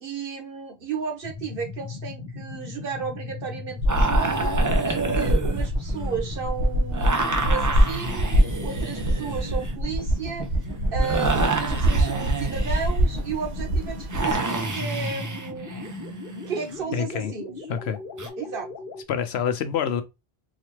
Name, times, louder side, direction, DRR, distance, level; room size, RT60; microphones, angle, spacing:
voice 1, 0.0-4.5 4.8-8.3 8.6-10.5 10.9-15.7 16.3-17.6 18.4-18.7, right 6 dB, 60° right, 1.1 m, -33 dB
sound 1, 1.2-19.0, left 3 dB, 60° left, 0.9 m, -39 dB
sound 2, 3.8-14.3, right 1 dB, 90° right, 1.1 m, -24 dB
sound 3, 3.9-6.4 6.9-13.1 14.1-16.8 18.2-18.3, right 3 dB, 30° right, 0.3 m, -29 dB
voice 2, 16.9-17.3 17.7-18.0 19.1-20.0, left 8 dB, 85° left, 0.9 m, -26 dB
4.1 x 2.4 x 3.0 m
omnidirectional pair, 1.1 m